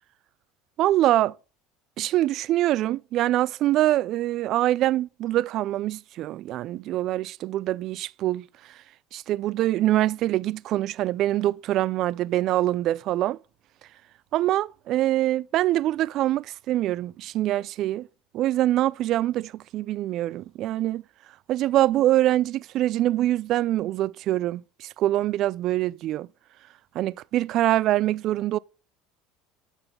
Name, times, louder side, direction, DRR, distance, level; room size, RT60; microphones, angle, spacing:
voice 1, 0.8-1.3 2.0-8.5 9.1-13.4 14.3-18.1 18.3-21.0 21.5-26.3 26.9-28.6, right 14 dB, 55° right, 0.3 m, -24 dB
8.9 x 5.8 x 3.7 m
supercardioid pair, 110°, 0 cm